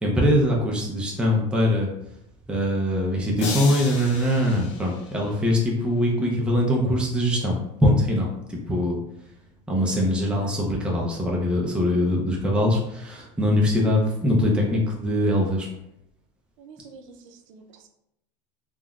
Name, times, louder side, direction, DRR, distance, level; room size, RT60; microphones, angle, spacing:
voice 1, 0.0-1.9 2.5-9.0 9.7-15.7, left 1 dB, 5° right, -2 dB, 0.4 m, -22 dB
sound 1, 3.4-5.7, left 5 dB, 70° left, 0.5 m, -35 dB
voice 2, 16.6-17.9, right 4 dB, 80° right, 4 dB, 0.5 m, -47 dB
3.6 x 2.1 x 2.3 m, 0.81 s
cardioid pair, 160°, 16 cm